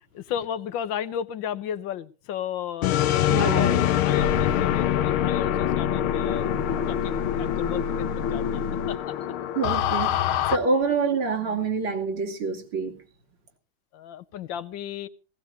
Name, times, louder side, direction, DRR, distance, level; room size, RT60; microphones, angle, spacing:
voice 1, 0.1-6.5 6.9-9.1 13.9-15.1, left 9 dB, 70° left, 13 dB, 1.6 m, -34 dB
sound 1, 2.8-10.6, left 10 dB, 85° left, 1.7 m, -24 dB
voice 2, 3.3-3.8 9.6-12.9, right 4 dB, 90° right, 4 dB, 3.4 m, -26 dB
18.5 x 17.5 x 2.7 m, 0.35 s
omnidirectional pair, 2.2 m